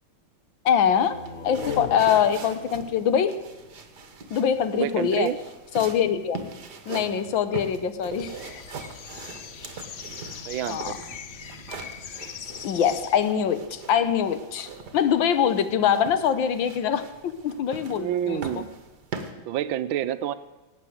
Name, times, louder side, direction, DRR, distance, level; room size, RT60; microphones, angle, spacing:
voice 1, 0.6-1.2 1.4-3.3 4.3-5.3 5.7-6.4 6.9-8.3 10.7-10.9 12.6-18.4, left 8 dB, 85° left, 12 dB, 1.7 m, -23 dB
sound 1, 0.9-4.5, left 6 dB, 45° left, 1.2 m, -38 dB
sound 2, 0.9-19.3, right 4 dB, 60° right, 2.0 m, -42 dB
voice 2, 4.7-5.4 7.5-7.6 10.5-11.2 17.9-18.7 19.5-20.3, right 11 dB, 90° right, 13 dB, 1.5 m, -29 dB
sound 3, 8.2-13.2, left 8 dB, 65° left, 0.6 m, -41 dB
17.5 x 9.2 x 8.0 m, 1.1 s
omnidirectional pair, 2.1 m